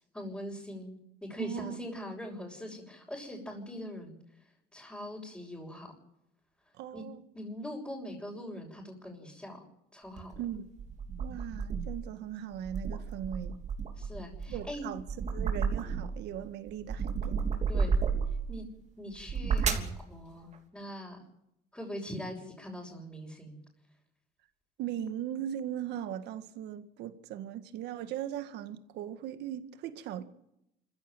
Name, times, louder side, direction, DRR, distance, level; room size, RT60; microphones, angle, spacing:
voice 1, 0.1-4.2 4.7-5.9 6.9-7.0 7.3-9.6 9.9-10.4 14.0-14.9 17.7-18.0 18.5-18.7 19.0-21.2 21.7-23.6, equal, 5° left, -4 dB, 5.9 m, -42 dB
voice 2, 1.4-1.8 6.8-7.2 10.4-10.7 11.2-13.6 14.5-17.4 24.8-30.2, right 10 dB, 85° right, 10 dB, 1.8 m, -39 dB
sound 1, 10.2-12.0 12.5-16.3 16.7-18.5 19.1-20.0, right 5 dB, 45° right, 3.2 m, -32 dB
25.5 x 15.5 x 9.1 m, 0.83 s
cardioid pair, 110°, 17 cm